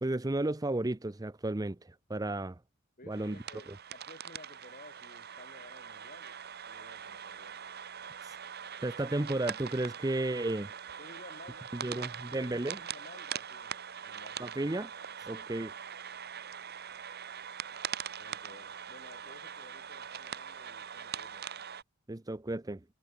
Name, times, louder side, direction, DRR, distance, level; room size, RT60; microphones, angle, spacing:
voice 1, 0.0-1.8 2.1-2.6 3.1-3.4 8.8-10.7 11.8-12.8 14.4-14.9 15.3-15.7 22.1-22.8, right 2 dB, 15° right, 0.5 m, -33 dB
voice 2, 3.0-6.4 6.7-7.6 11.0-14.6 15.2-15.4 18.2-21.5, left 2 dB, 40° left, 5.8 m, -55 dB
sound 1, 3.1-21.8, right 8 dB, 45° right, 1.1 m, -42 dB
head